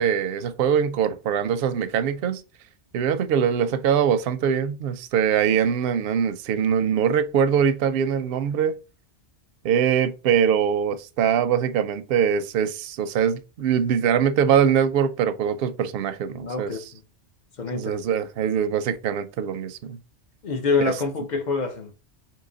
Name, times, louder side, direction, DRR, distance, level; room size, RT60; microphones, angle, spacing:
voice 1, 0.0-2.4 2.9-8.7 9.6-16.9 17.7-20.0 20.8-20.9, right 8 dB, 65° right, 0.7 m, -23 dB
voice 2, 16.3-17.0 17.6-18.0 20.4-21.9, left 4 dB, 45° left, 0.7 m, -26 dB
3.9 x 2.9 x 3.9 m
omnidirectional pair, 1.2 m